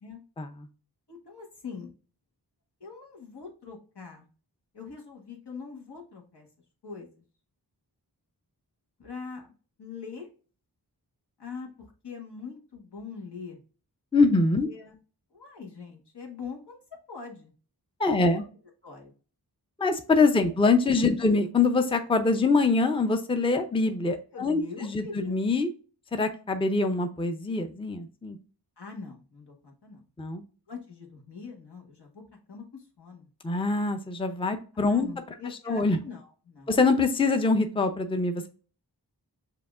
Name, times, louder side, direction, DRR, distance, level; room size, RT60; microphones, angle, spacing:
voice 1, 1.1-1.9 2.8-4.3 4.7-6.5 6.8-7.2 9.0-9.5 9.8-10.3 11.4-13.6 14.7-14.9 15.3-16.8 17.1-17.5 18.2-18.4 18.8-19.1 21.1-21.4 24.3-25.3 28.8-30.0 30.7-32.2 32.5-33.3 34.8-36.8, left 5 dB, 80° left, 0 dB, 1.4 m, -42 dB
voice 2, 14.1-14.7 18.0-18.4 19.8-25.7 26.1-28.4 30.2-30.4 33.4-35.1 35.7-36.0 36.7-38.5, left 3 dB, 15° left, 7 dB, 0.5 m, -24 dB
6.7 x 2.8 x 2.4 m, 0.38 s
wide cardioid pair, 60°, 40 cm